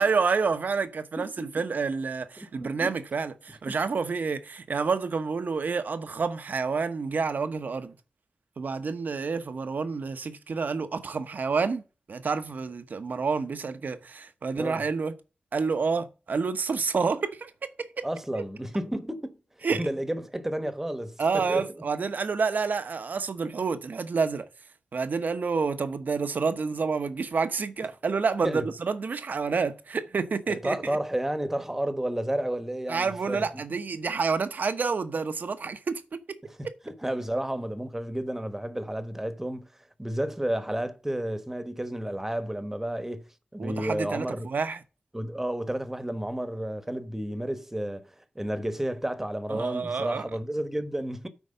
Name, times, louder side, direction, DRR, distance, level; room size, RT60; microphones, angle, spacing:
voice 1, 0.0-7.9 8.6-11.8 12.1-15.1 15.5-18.1 18.3-18.4 19.6-19.8 21.2-24.5 24.9-30.8 32.9-36.2 36.6-36.7 43.6-44.8 49.5-50.3, right 5 dB, 75° right, 1.0 m, -29 dB
voice 2, 2.4-2.9 3.7-3.8 14.6-14.8 18.0-19.3 19.7-21.7 28.4-28.6 30.5-33.5 34.1-34.2 36.6-39.7 40.0-44.5 45.1-51.3, right 1 dB, 10° right, 1.2 m, -31 dB
8.4 x 4.7 x 6.5 m
wide cardioid pair, 80°, 3 cm